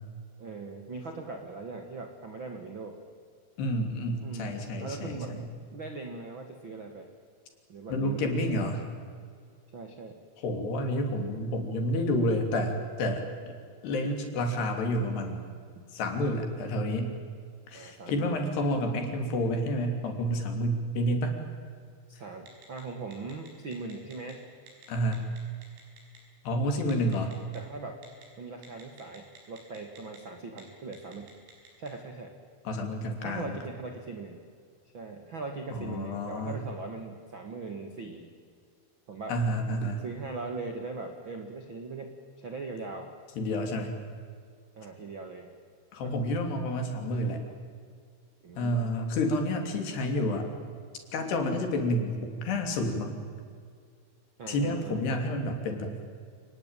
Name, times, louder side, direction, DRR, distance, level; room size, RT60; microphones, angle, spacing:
voice 1, 0.4-3.0 4.2-5.4 5.7-7.1 7.7-8.5 9.7-10.2 17.7-18.5 22.1-24.4 27.5-28.0 28.4-31.3 31.8-32.3 33.2-34.4 34.9-38.3 39.1-39.4 40.0-43.1 44.7-45.5 46.0-46.1 48.4-48.9 54.4-55.0, right 3 dB, 60° right, 4 dB, 1.3 m, -40 dB
voice 2, 3.6-5.4 7.9-8.8 10.4-13.3 13.8-15.4 15.9-17.1 17.7-21.4 24.9-25.3 26.4-27.3 32.6-33.6 35.7-36.6 39.3-40.0 43.4-43.9 45.9-47.4 48.6-50.5 51.1-53.2 54.5-55.9, left 1 dB, 60° left, 4 dB, 4.8 m, -29 dB
Telephone, 22.5-22.8 23.1-24.3 24.7-24.9 25.1-26.2 26.9-27.6 28.0-28.2 28.6-30.2 30.5-30.6 30.9-31.9, right 2 dB, 85° right, 8.0 m, -53 dB
28.5 x 19.5 x 9.1 m, 2.1 s
omnidirectional pair, 5.5 m